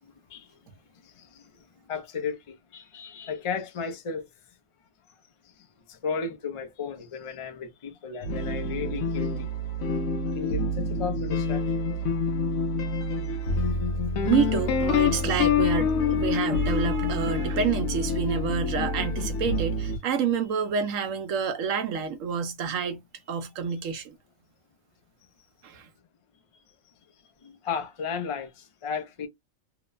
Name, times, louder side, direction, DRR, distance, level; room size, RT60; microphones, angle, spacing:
voice 1, 0.0-0.6 1.0-4.3 5.4-9.5 10.3-11.7 12.0-12.2 27.4-29.3, left 6 dB, 50° left, 0.4 m, -35 dB
sound 1, 8.2-20.0, left 4 dB, 75° left, 1.0 m, -27 dB
voice 2, 14.2-23.0 23.3-24.1 25.6-25.9, right 7 dB, 70° right, 0.9 m, -28 dB
2.9 x 2.1 x 2.2 m
omnidirectional pair, 1.4 m